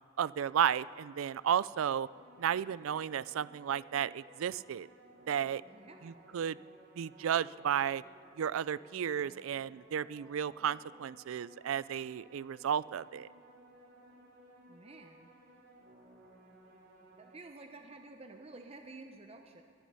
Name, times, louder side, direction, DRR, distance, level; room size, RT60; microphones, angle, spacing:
voice 1, 0.2-2.1 2.4-4.9 5.3-5.6 6.0-6.6 7.0-8.0 8.4-13.3, right 9 dB, 90° right, 19 dB, 0.4 m, -33 dB
sound 1, 1.9-17.4, right 1 dB, 50° right, 3.1 m, -59 dB
voice 2, 5.7-6.3 14.7-15.3 17.2-19.6, right 2 dB, 30° right, 5 dB, 0.7 m, -51 dB
20.0 x 12.5 x 5.5 m, 2.8 s
head